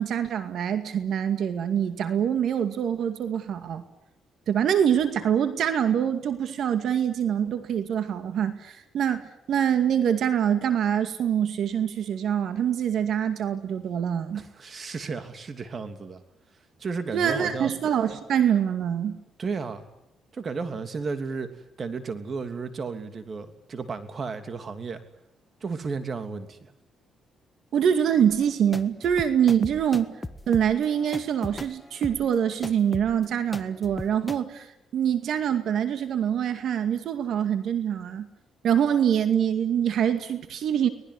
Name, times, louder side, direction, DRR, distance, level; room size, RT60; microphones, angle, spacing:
voice 1, 0.0-3.8 4.5-14.4 17.1-19.2 27.7-30.1 30.5-38.3 38.6-40.9, right 9 dB, 70° right, 9 dB, 2.2 m, -25 dB
voice 2, 14.3-16.2 16.8-17.7 19.4-19.9 20.3-25.0 25.6-26.7, right 4 dB, 45° right, 8 dB, 2.9 m, -33 dB
sound 1, 28.3-34.4, left 2 dB, 15° left, 1.5 m, -38 dB
25.0 x 19.5 x 9.9 m, 0.81 s
cardioid pair, 90°, 0 cm